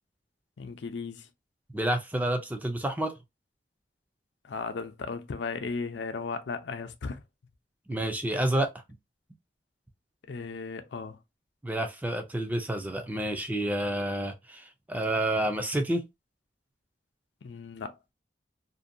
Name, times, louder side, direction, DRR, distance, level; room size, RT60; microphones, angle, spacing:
voice 1, 0.6-1.3 4.4-7.2 10.3-11.2 17.4-18.0, left 4 dB, 80° left, 0.5 m, -36 dB
voice 2, 1.7-3.1 7.9-8.7 11.6-16.0, right 1 dB, 10° right, 0.4 m, -29 dB
2.6 x 2.2 x 2.5 m
head